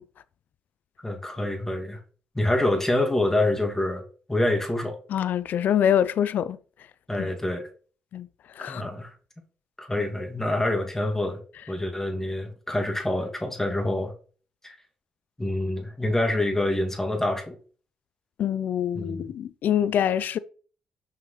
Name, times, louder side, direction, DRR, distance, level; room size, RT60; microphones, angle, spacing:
voice 1, 1.0-2.0 2.3-4.0 4.3-5.0 7.1-7.7 8.7-9.1 9.8-11.4 11.7-14.1 14.6-14.8 15.4-17.5 18.9-19.3, left 1 dB, 10° left, 2.0 m, -26 dB
voice 2, 5.1-6.6 7.2-7.3 8.1-8.3 8.6-8.9 18.4-20.4, left 9 dB, 65° left, 0.4 m, -25 dB
5.9 x 5.7 x 3.1 m
hypercardioid pair, 50°, 3 cm